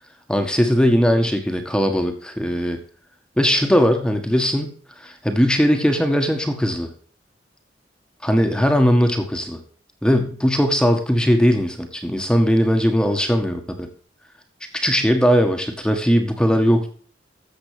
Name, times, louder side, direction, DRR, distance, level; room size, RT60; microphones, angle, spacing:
voice 1, 0.3-2.8 3.4-4.7 5.0-6.9 8.2-9.6 10.0-13.9 14.7-16.9, equal, 5° left, 5 dB, 1.6 m, -19 dB
14.0 x 7.3 x 5.0 m, 0.42 s
head